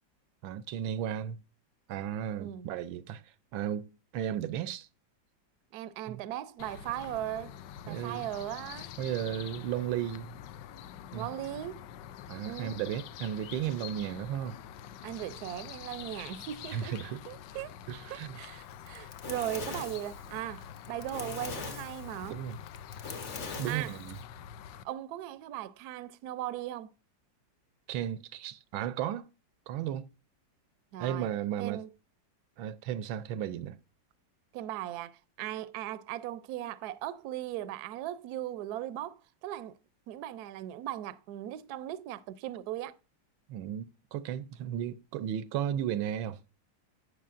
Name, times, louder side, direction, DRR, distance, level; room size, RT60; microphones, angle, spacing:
voice 1, 0.4-1.4 1.9-3.2 3.5-4.9 6.1-6.2 7.9-8.3 9.0-10.4 11.1-11.3 12.3-14.6 16.7-17.2 17.9-18.4 22.3-22.6 23.6-24.2 27.9-29.3 29.7-30.1 31.0-31.8 32.6-33.8 43.5-46.4, right 10 dB, 85° right, 1.4 m, -34 dB
voice 2, 5.7-7.5 7.9-8.9 11.1-11.9 12.4-12.8 15.0-16.9 17.3-17.7 18.1-22.4 23.6-24.0 24.8-26.9 30.9-31.3 31.6-31.9 34.5-39.8 40.1-43.0, right 13 dB, 70° right, 1.0 m, -38 dB
sound 1, 6.6-24.8, left 9 dB, 75° left, 1.2 m, -46 dB
Fire, 18.7-24.2, left 4 dB, 45° left, 1.2 m, -41 dB
11.0 x 8.1 x 2.5 m
omnidirectional pair, 2.1 m